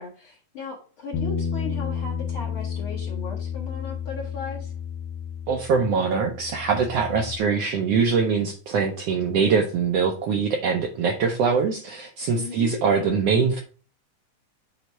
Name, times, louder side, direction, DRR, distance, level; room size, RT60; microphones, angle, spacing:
voice 1, 0.0-4.7 12.3-12.8, left 5 dB, 60° left, 0 dB, 1.5 m, -37 dB
Bass guitar, 1.1-7.4, left 7 dB, 80° left, 1.9 m, -31 dB
voice 2, 5.5-13.6, right 5 dB, 75° right, 2 dB, 1.5 m, -23 dB
8.0 x 3.2 x 4.4 m, 0.38 s
omnidirectional pair, 3.6 m